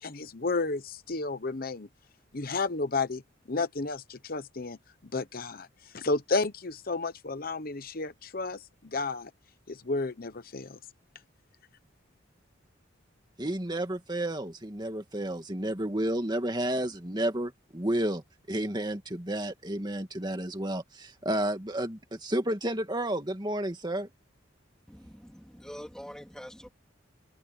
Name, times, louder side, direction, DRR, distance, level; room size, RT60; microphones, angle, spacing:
voice 1, 0.0-1.9 2.3-3.2 3.5-4.8 5.1-5.7 5.9-9.3 9.7-10.8, left 3 dB, 50° left, 1.0 m, -32 dB
voice 2, 13.4-18.2 18.5-24.1, right 1 dB, 20° right, 2.2 m, -31 dB
voice 3, 24.9-26.7, equal, 5° left, 3.0 m, -45 dB
head